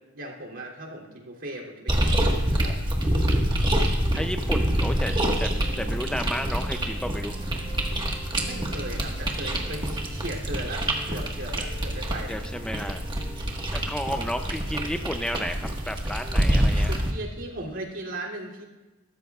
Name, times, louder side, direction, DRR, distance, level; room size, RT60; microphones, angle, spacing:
voice 1, 0.1-2.7 8.4-12.3 16.6-18.6, right 1 dB, 65° right, -3 dB, 3.0 m, -37 dB
sound 1, 1.9-17.1, right 1 dB, 25° right, 1.5 m, -26 dB
sound 2, 3.9-14.8, left 1 dB, 30° left, 3.7 m, -44 dB
voice 2, 4.1-7.4 12.3-13.0 13.7-17.0, equal, 5° left, 6 dB, 0.5 m, -32 dB
23.5 x 13.5 x 2.4 m, 1.1 s
head